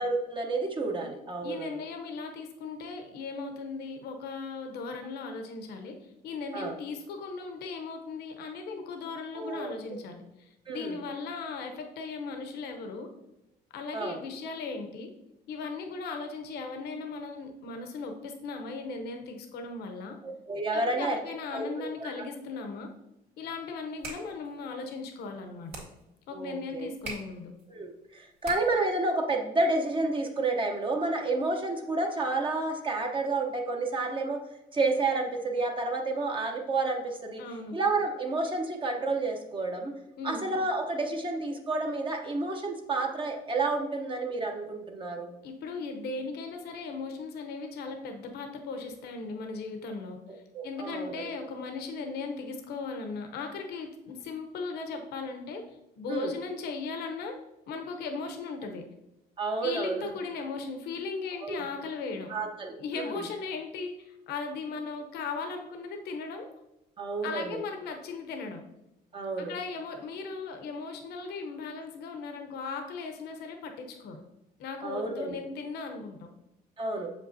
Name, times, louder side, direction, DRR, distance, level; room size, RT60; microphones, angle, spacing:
voice 1, 0.0-1.8 6.5-6.7 9.3-10.0 10.7-11.0 13.9-14.2 20.2-21.2 21.5-22.1 26.3-26.9 27.7-34.4 34.7-37.4 37.7-40.0 40.2-45.3 50.3-51.3 56.1-56.3 59.4-60.1 61.4-61.6 62.3-63.2 67.0-67.5 69.1-69.5 74.8-75.4 76.8-77.1, right 3 dB, 30° right, 2 dB, 0.8 m, -30 dB
voice 2, 1.4-13.1 13.7-15.1 15.5-20.2 20.7-22.9 23.4-25.7 26.3-27.5 37.4-37.8 40.2-40.4 45.4-55.6 56.0-57.4 57.6-58.8 59.6-62.3 62.8-66.5 67.2-68.6 69.4-74.2 74.6-76.3, left 4 dB, 75° left, 5 dB, 0.8 m, -37 dB
sound 1, 23.7-29.0, right 3 dB, 70° right, 2.2 m, -46 dB
6.8 x 5.3 x 2.7 m, 0.90 s
cardioid pair, 110°, 17 cm